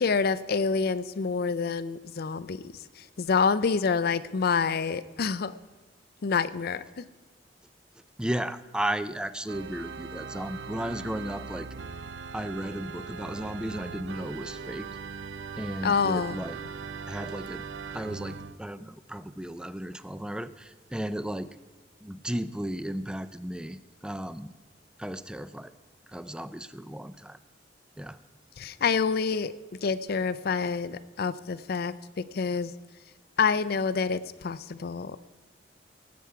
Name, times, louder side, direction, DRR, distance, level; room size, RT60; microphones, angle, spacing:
voice 1, 0.0-2.6 3.2-5.5 6.2-7.0 15.8-16.4 28.6-29.5 29.8-31.9 32.3-32.7 33.4-35.2, left 5 dB, 60° left, 15 dB, 0.5 m, -27 dB
voice 2, 8.2-11.7 12.3-14.9 15.6-16.6 17.1-17.7 17.9-21.5 22.0-24.5 25.0-25.7 26.1-27.4 28.0-28.2, right 1 dB, 5° right, 14 dB, 0.4 m, -34 dB
Organ, 9.5-18.6, right 5 dB, 75° right, 0.5 m, -40 dB
19.5 x 8.5 x 4.7 m, 1.3 s
head